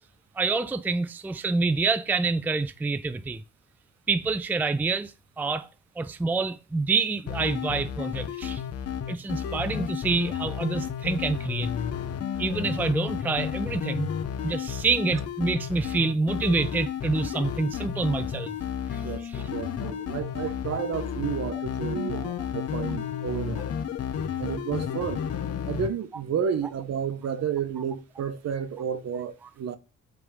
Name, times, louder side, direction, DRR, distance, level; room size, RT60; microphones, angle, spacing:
voice 1, 0.4-3.4 4.1-5.7 6.0-8.6 9.1-11.7 12.4-14.1 14.4-18.5 18.9-19.4 22.2-22.3, right 4 dB, 5° right, 0.4 m, -27 dB
sound 1, 7.3-25.9, left 8 dB, 55° left, 0.9 m, -32 dB
voice 2, 19.0-23.7 24.4-25.2 25.7-29.8, right 8 dB, 60° right, 0.9 m, -31 dB
7.9 x 3.5 x 3.6 m
cardioid pair, 90°, 30 cm